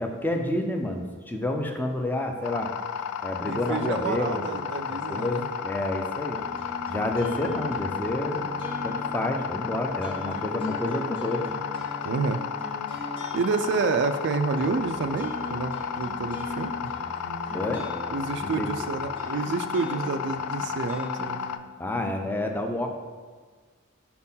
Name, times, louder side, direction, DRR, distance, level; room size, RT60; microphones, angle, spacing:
voice 1, 0.0-2.7 3.2-6.4 6.9-8.5 8.8-11.5 17.5-17.9 18.4-18.8 21.8-22.9, left 1 dB, 10° left, 4 dB, 0.5 m, -29 dB
sound 1, 2.4-21.6, left 7 dB, 90° left, 0.3 m, -33 dB
voice 2, 3.4-5.5 12.0-12.4 12.9-13.0 13.3-16.9 18.1-21.4, right 4 dB, 55° right, 8 dB, 0.3 m, -29 dB
sound 2, 6.3-21.5, equal, 25° left, 1.6 m, -40 dB
4.3 x 4.3 x 5.5 m, 1.5 s
head